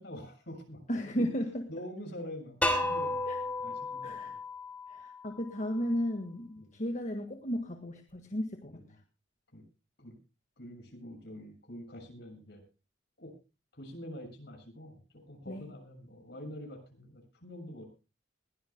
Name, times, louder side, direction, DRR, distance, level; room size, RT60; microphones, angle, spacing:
voice 1, 0.0-0.8 1.1-1.2 1.7-3.2 3.6-4.3 6.6-6.7 8.7-8.8 9.5-9.6 10.0-10.1 10.6-12.6 13.2-13.3 13.7-17.9, equal, 60° left, 5 dB, 6.6 m, -46 dB
voice 2, 0.9-1.6 3.3-3.4 4.0-4.3 4.9-8.8 15.5-15.7, equal, 40° left, 5 dB, 1.7 m, -34 dB
sound 1, 2.6-5.5, left 1 dB, 10° left, 3.0 m, -33 dB
21.5 x 16.5 x 2.2 m, 0.31 s
head